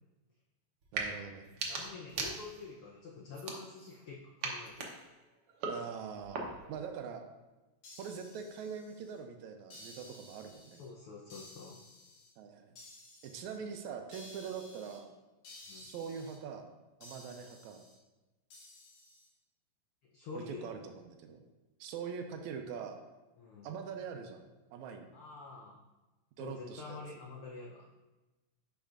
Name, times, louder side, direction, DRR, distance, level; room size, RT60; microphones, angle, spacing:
sound 1, 0.8-1.1 1.4-2.8 3.3-4.0 4.4-6.8, right 4 dB, 65° right, 1.6 m, -40 dB
voice 1, 0.9-1.5 5.7-7.2 8.0-10.8 12.4-12.7 13.2-15.1 15.7-16.6 17.0-17.8 20.3-21.4 21.8-23.0 23.6-24.4 24.7-25.1 26.4-27.0, right 6 dB, 80° right, 5 dB, 2.0 m, -43 dB
voice 2, 1.7-4.9 10.8-11.8 15.7-15.9 20.1-20.6 23.4-23.7 25.1-25.8 26.4-27.9, left 4 dB, 80° left, -2 dB, 1.2 m, -47 dB
sound 2, 7.8-9.2 9.7-10.9 11.3-12.3 12.8-13.6 14.1-15.0 15.4-16.4 17.0-18.0 18.5-19.3, left 2 dB, 65° left, 2.8 m, -55 dB
10.0 x 5.4 x 2.5 m, 1.1 s
omnidirectional pair, 3.4 m